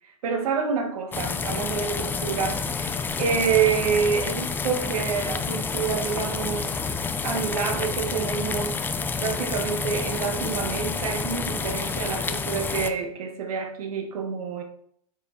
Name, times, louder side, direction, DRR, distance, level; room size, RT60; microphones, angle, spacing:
voice 1, 0.2-6.8 7.2-8.9 9.2-14.6, right 6 dB, 75° right, 4 dB, 2.5 m, -27 dB
sound 1, 1.1-12.9, left 5 dB, 10° left, 0.6 m, -29 dB
9.7 x 7.7 x 4.6 m, 0.66 s
supercardioid pair, 150°, 19 cm